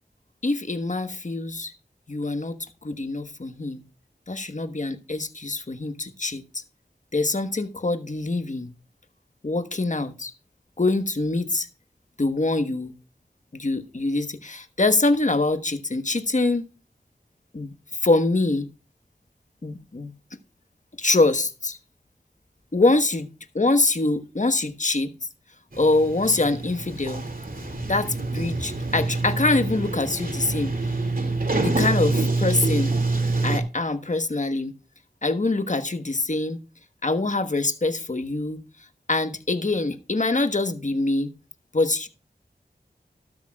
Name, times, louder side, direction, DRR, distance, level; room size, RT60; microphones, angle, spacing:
voice 1, 0.4-1.7 2.1-3.8 4.3-6.6 7.1-8.7 9.4-10.3 10.8-11.7 12.2-12.9 13.5-16.6 17.5-17.7 18.0-18.7 19.6-20.1 21.0-21.8 22.7-23.3 23.5-25.1 25.8-27.2 27.9-30.9 31.6-32.9 33.4-34.7 35.2-36.6 37.0-38.6 39.1-41.3 41.7-42.1, left 2 dB, 45° left, 1.3 m, -24 dB
Sliding door, 25.7-33.6, right 3 dB, 55° right, 2.4 m, -26 dB
13.0 x 12.5 x 2.4 m
wide cardioid pair, 40°, 17 cm